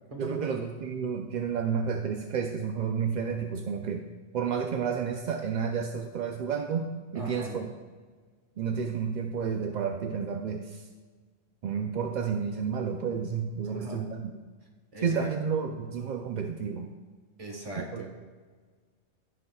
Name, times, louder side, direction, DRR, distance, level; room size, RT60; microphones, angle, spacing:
voice 1, 0.2-4.0 4.3-7.7 8.6-10.9 11.6-14.4 15.0-16.9 17.9-18.0, right 6 dB, 55° right, 4 dB, 0.5 m, -31 dB
voice 2, 7.1-7.6 13.6-14.0 14.9-15.3 17.4-18.1, right 1 dB, 30° right, 1 dB, 1.3 m, -39 dB
16.0 x 5.6 x 2.3 m, 1.5 s
omnidirectional pair, 1.2 m